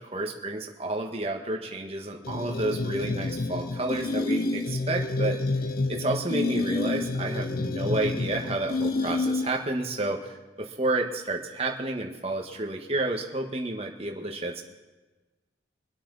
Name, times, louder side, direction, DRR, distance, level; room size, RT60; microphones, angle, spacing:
voice 1, 0.0-5.4 5.9-10.3 10.6-14.6, right 2 dB, 30° right, 2 dB, 1.6 m, -30 dB
sound 1, 2.2-9.8, left 2 dB, 50° left, 0.6 m, -29 dB
25.5 x 8.6 x 4.1 m, 1.2 s
head